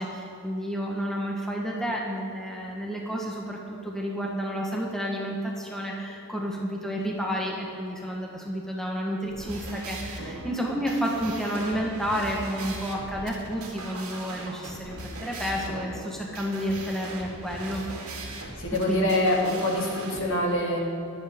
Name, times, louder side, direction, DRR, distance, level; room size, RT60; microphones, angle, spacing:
voice 1, 0.0-17.8 18.7-19.1, equal, ahead, -2 dB, 1.1 m, -31 dB
sound 1, 9.3-20.2, right 2 dB, 75° right, 2.1 m, -39 dB
voice 2, 18.6-20.8, left 1 dB, 60° left, -2 dB, 2.4 m, -25 dB
23.0 x 8.1 x 3.6 m, 2.9 s
head